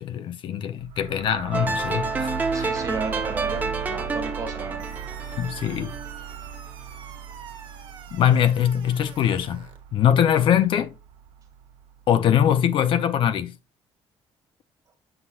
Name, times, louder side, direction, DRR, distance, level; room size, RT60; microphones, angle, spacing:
voice 1, 0.0-2.7 5.4-5.9 8.1-9.7 9.9-10.9 12.1-13.6, left 9 dB, 55° left, 0.7 m, -22 dB
sound 1, 0.8-12.4, right 9 dB, 75° right, 0.7 m, -38 dB
sound 2, 1.5-6.6, right 3 dB, 15° right, 0.9 m, -29 dB
voice 2, 2.5-4.9, right 4 dB, 35° right, 1.9 m, -34 dB
sound 3, 4.8-9.8, right 7 dB, 50° right, 1.5 m, -45 dB
7.9 x 5.5 x 2.4 m
cardioid pair, 135°, 10 cm